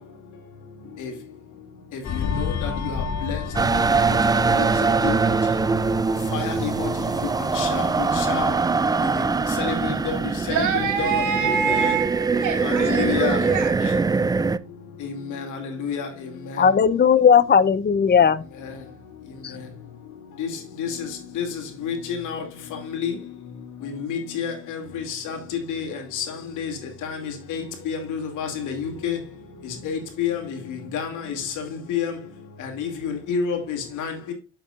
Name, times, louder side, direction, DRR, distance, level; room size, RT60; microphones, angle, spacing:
sound 1, 2.0-11.1 11.4-11.7, left 6 dB, 65° left, 1.7 m, -33 dB
voice 1, 2.1-3.4 4.6-4.7 5.0-5.1 6.3-6.9 7.5-8.5 9.6-10.2 10.5-11.2 11.7-11.9 12.6-13.4 15.0-16.1 20.4-20.5 20.8-20.9 21.4-21.5 21.8-22.4 22.9-23.1 23.8-25.4 25.7-26.3 26.6-26.7 27.0-29.2 29.8-30.4 30.7-31.3 31.9-32.1 32.8-34.3, left 7 dB, 85° left, 2.4 m, -29 dB
sound 2, 3.5-14.6, right 4 dB, 15° right, 0.3 m, -22 dB
voice 2, 10.4-13.7, right 6 dB, 80° right, 2.6 m, -25 dB
voice 3, 16.6-18.4 19.4-19.6, left 7 dB, 35° left, 0.7 m, -17 dB
7.9 x 7.1 x 2.4 m
cardioid pair, 90°, 30 cm